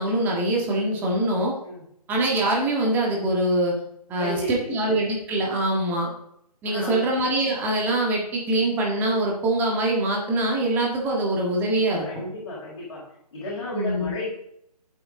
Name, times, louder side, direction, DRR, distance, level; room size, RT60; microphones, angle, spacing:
voice 1, 0.0-1.5 2.1-3.7 4.1-6.1 6.6-12.1 13.7-14.1, right 1 dB, 10° right, -1 dB, 1.7 m, -24 dB
voice 2, 4.1-4.7 6.6-7.1 12.0-13.0 13.3-14.3, left 1 dB, 45° left, -6 dB, 5.3 m, -32 dB
14.0 x 8.2 x 3.8 m, 0.74 s
figure-of-eight pair, 155°, 21 cm